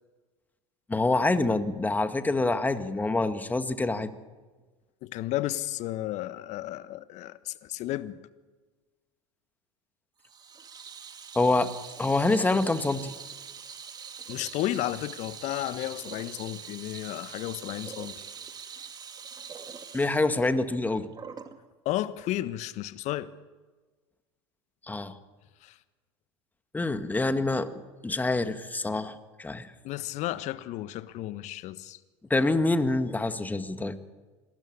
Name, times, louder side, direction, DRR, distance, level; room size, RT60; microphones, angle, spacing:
voice 1, 0.9-4.1 11.4-11.7 12.0-13.1 19.9-21.1 24.9-25.1 26.7-29.7 32.3-34.0, left 2 dB, 10° left, 1.9 m, -26 dB
voice 2, 5.0-8.2 14.3-18.1 21.8-23.3 25.6-25.8 29.8-32.0, left 15 dB, 50° left, 1.4 m, -33 dB
Water tap faucet / Sink (filling or washing), 10.2-21.6, right 6 dB, 25° right, 2.3 m, -43 dB
26.5 x 19.5 x 9.9 m
hypercardioid pair, 85°, 15 cm